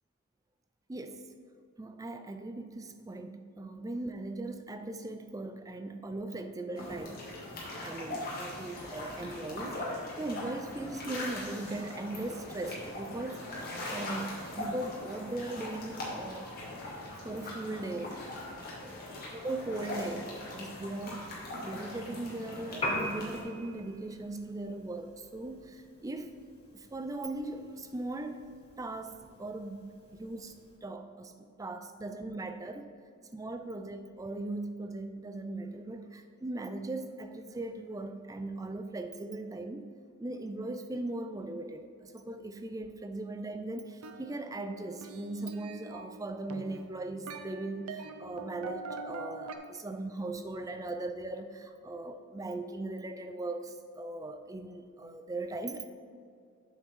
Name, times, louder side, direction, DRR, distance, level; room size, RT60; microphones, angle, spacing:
voice 1, 0.9-1.2 1.8-7.4 7.8-9.8 10.2-16.5 17.2-18.2 18.8-19.0 19.3-26.3 26.7-28.4 28.8-30.5 30.8-31.3 31.6-32.9 33.3-39.9 40.2-55.9, right 2 dB, 15° right, 7 dB, 0.4 m, -39 dB
sound 1, 6.7-23.4, left 1 dB, 45° left, 1.8 m, -41 dB
Piano, 22.7-30.8, left 1 dB, 25° left, 1.1 m, -42 dB
sound 2, 44.0-49.6, right 3 dB, 85° right, 0.6 m, -44 dB
7.6 x 6.4 x 3.7 m, 2.3 s
head